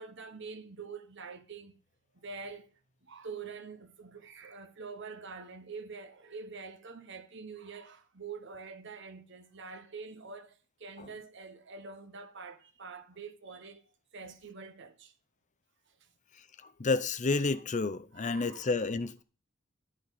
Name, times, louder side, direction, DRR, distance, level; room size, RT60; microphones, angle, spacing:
voice 1, 0.0-1.7 2.1-2.7 3.0-13.8 14.1-15.1 15.9-16.1 18.1-18.7, right 4 dB, 60° right, 1.2 m, -46 dB
voice 2, 16.6-19.2, left 3 dB, 35° left, 0.6 m, -30 dB
11.5 x 10.5 x 4.1 m
head